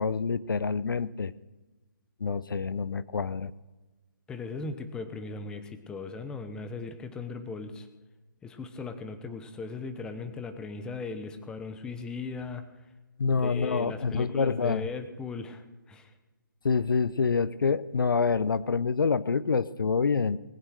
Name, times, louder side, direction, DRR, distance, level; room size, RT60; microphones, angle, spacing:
voice 1, 0.0-1.3 2.2-3.5 13.2-14.9 16.6-20.4, left 5 dB, 85° left, 18 dB, 0.6 m, -27 dB
voice 2, 4.3-7.9 8.4-12.6 13.3-16.1, left 4 dB, 5° left, 9 dB, 0.9 m, -38 dB
19.5 x 9.2 x 6.5 m, 1.2 s
hypercardioid pair, 155°, 11 cm